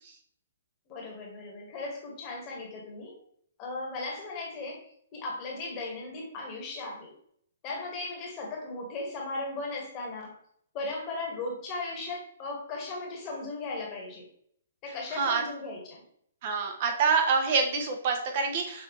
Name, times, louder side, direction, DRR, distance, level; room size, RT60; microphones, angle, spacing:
voice 1, 0.9-3.2 3.6-7.1 7.6-10.4 10.7-14.3 14.8-16.0, left 3 dB, 25° left, -1 dB, 1.3 m, -37 dB
voice 2, 16.4-18.8, right 5 dB, 40° right, 4 dB, 0.6 m, -26 dB
5.3 x 2.7 x 3.0 m, 0.65 s
hypercardioid pair, 160°, 0 cm